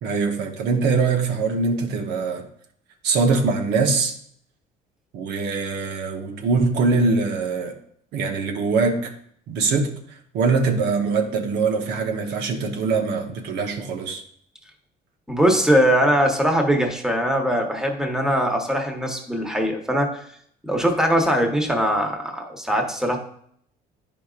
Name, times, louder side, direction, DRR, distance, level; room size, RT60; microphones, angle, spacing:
voice 1, 0.0-2.5 3.0-4.1 5.1-7.7 8.1-9.1 9.5-14.2, right 4 dB, 80° right, 3 dB, 1.1 m, -23 dB
voice 2, 15.3-20.2 20.6-23.2, equal, 5° right, 2 dB, 1.1 m, -21 dB
10.0 x 5.1 x 2.4 m, 0.65 s
cardioid pair, 110°, 17 cm